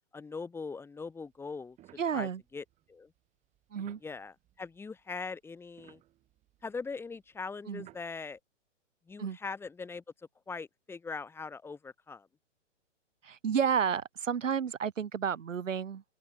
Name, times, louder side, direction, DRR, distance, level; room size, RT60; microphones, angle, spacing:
voice 1, 0.1-1.8 2.1-3.1 4.0-6.0 6.6-8.4 9.1-10.0 10.5-12.3, left 4 dB, 5° left, 3.9 m, -41 dB
sound 1, 1.0-5.2 5.5-8.4, right 14 dB, 20° right, 6.8 m, -61 dB
voice 2, 2.0-2.4 3.7-4.0 7.7-7.9 9.2-9.4 13.2-16.0, right 7 dB, 85° right, 2.0 m, -31 dB
open air
hypercardioid pair, 155°, 37 cm